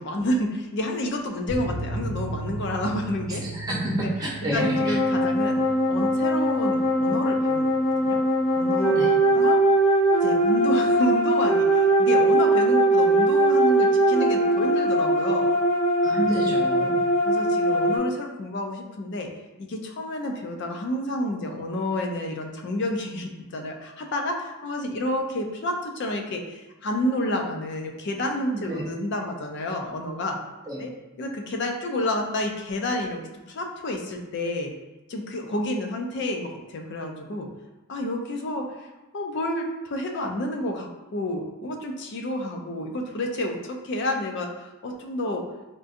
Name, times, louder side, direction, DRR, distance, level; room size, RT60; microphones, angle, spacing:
voice 1, 0.0-3.4 3.8-4.1 4.4-5.6 5.9-7.7 8.0-8.2 8.6-9.1 9.3-9.6 10.2-15.5 16.8-16.9 17.3-19.3 19.6-30.4 30.8-30.9 31.2-33.2 33.5-34.7 35.1-37.5 37.9-38.7 39.1-45.4, left 1 dB, 50° left, 3 dB, 0.4 m, -29 dB
sound 1, 1.5-8.6 8.8-8.9 9.3-9.4, right 1 dB, 5° left, 0.8 m, -37 dB
voice 2, 3.3-5.0 8.9-9.1 16.0-17.0 28.5-28.8 30.7-30.8, right 1 dB, 15° right, -4 dB, 0.5 m, -29 dB
sound 2, 4.5-18.0, right 1 dB, 30° left, 1.0 m, -21 dB
3.6 x 2.5 x 2.5 m, 1.1 s
head